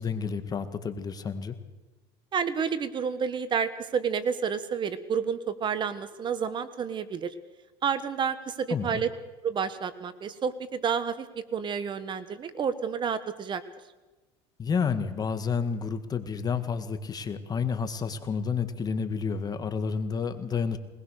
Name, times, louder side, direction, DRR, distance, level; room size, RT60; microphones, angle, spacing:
voice 1, 0.0-1.6 8.7-9.0 14.6-20.8, left 6 dB, 30° left, 9 dB, 1.9 m, -30 dB
voice 2, 2.3-7.3 7.8-9.1 9.4-11.3 11.5-13.6, right 6 dB, 35° right, 13 dB, 1.3 m, -30 dB
21.5 x 20.0 x 6.6 m, 1.2 s
supercardioid pair, 110°, 14 cm